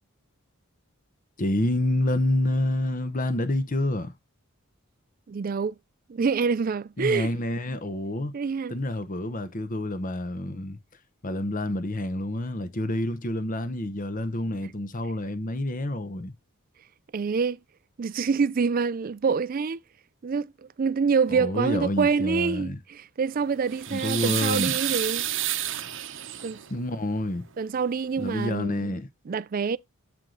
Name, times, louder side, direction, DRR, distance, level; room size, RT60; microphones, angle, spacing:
voice 1, 1.4-4.1 7.0-8.3 8.7-10.8 11.2-16.3 21.3-22.8 23.9-24.8 26.7-27.4 28.2-29.1, left 1 dB, 35° left, 0.8 m, -28 dB
voice 2, 5.3-5.7 6.1-7.3 8.3-8.7 17.1-17.6 18.0-19.8 20.2-20.5 20.8-25.3 26.4-26.6 27.6-28.9 29.3-29.8, right 5 dB, 40° right, 0.3 m, -26 dB
sound 1, 23.4-26.7 27.9-28.0 28.3-28.5, right 12 dB, 55° right, 0.8 m, -30 dB
7.8 x 4.7 x 3.8 m
head